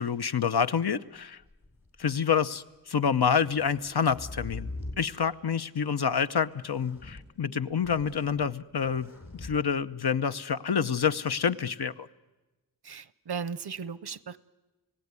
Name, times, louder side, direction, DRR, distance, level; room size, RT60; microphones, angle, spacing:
voice 1, 0.0-1.4 2.0-12.1, left 7 dB, 80° left, 11 dB, 0.8 m, -28 dB
sound 1, 1.4-2.2 3.1-5.0 6.6-7.2 7.7-8.5 8.8-9.5, left 2 dB, 55° left, 4.0 m, -42 dB
voice 2, 12.8-14.4, right 6 dB, 85° right, 18 dB, 0.7 m, -36 dB
29.5 x 17.0 x 9.6 m, 1.2 s
wide cardioid pair, 75°, 38 cm